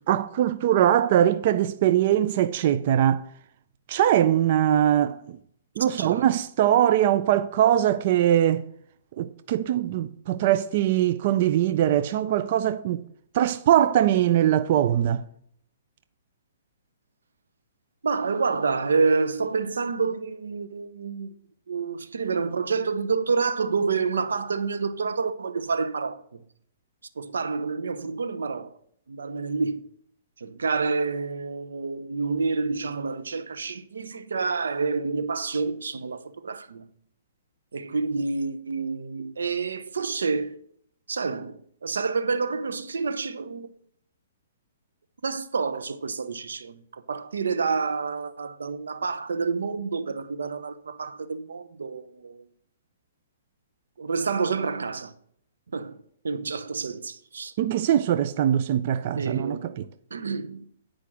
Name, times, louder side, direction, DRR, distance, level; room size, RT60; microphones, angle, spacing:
voice 1, 0.0-3.2 3.9-5.4 5.8-8.7 9.2-13.0 13.3-15.2 57.6-59.9, right 11 dB, 45° right, 0.4 m, -22 dB
voice 2, 5.9-6.2 18.0-21.3 21.7-26.4 27.2-28.8 29.1-29.8 30.4-36.9 37.7-40.6 41.1-43.7 45.2-52.5 54.0-55.1 55.7-57.5 59.1-59.8 60.1-60.6, right 4 dB, 85° right, 0.7 m, -28 dB
9.9 x 5.0 x 6.0 m
hypercardioid pair, 145°, 0 cm